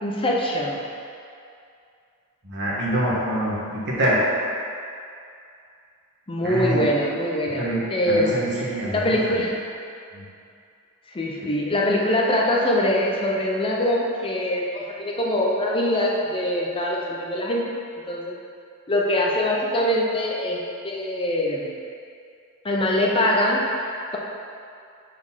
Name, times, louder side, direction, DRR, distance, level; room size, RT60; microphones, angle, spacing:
voice 1, 0.0-0.8 6.3-8.4 8.9-9.5 11.1-17.6 18.1-18.4 18.9-21.7 22.6-23.6, left 1 dB, 25° left, -2 dB, 0.6 m, -23 dB
voice 2, 2.4-4.3 6.4-6.8 7.6-9.2 10.1-10.2, right 1 dB, 55° right, -6 dB, 1.4 m, -25 dB
5.0 x 4.2 x 5.5 m, 2.5 s
head